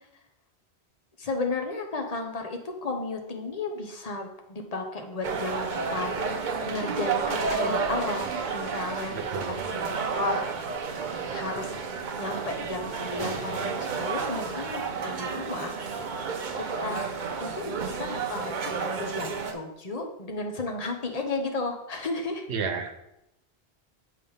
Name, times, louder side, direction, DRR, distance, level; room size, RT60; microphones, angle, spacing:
voice 1, 1.2-6.1 6.7-9.2 9.5-9.6 9.8-10.4 11.3-11.7 12.2-15.7 16.6-17.1 17.4-18.5 18.8-22.4, left 3 dB, 40° left, 3 dB, 0.9 m, -33 dB
sound 1, 5.2-19.5, right 5 dB, 50° right, 0.8 m, -31 dB
voice 2, 9.1-9.7 22.5-22.9, right 5 dB, 90° right, 6 dB, 1.1 m, -32 dB
7.5 x 3.4 x 5.5 m, 0.84 s
omnidirectional pair, 1.1 m